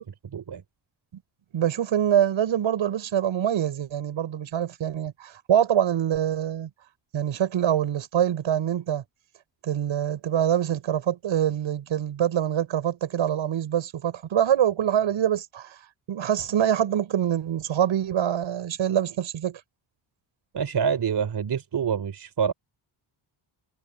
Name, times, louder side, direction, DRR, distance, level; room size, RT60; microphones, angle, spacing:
voice 1, 0.3-0.6 20.5-22.5, right 7 dB, 55° right, 4.2 m, -26 dB
voice 2, 1.5-6.7 7.1-9.0 9.6-15.7 16.1-19.6, right 10 dB, 75° right, 6.5 m, -25 dB
cardioid pair, 75°, 47 cm